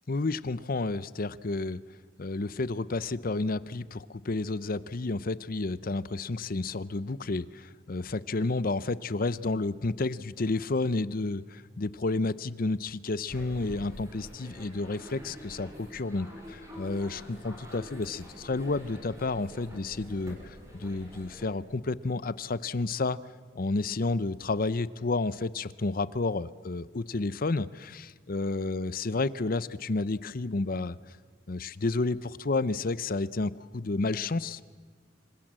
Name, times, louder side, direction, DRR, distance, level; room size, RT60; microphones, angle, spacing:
voice 1, 0.1-1.8 2.2-16.3 16.8-23.2 23.6-31.0 31.5-34.7, left 3 dB, 50° left, 17 dB, 0.7 m, -31 dB
sound 1, 13.3-21.5, equal, 15° right, 6.0 m, -46 dB
27.0 x 25.5 x 7.6 m, 1.5 s
head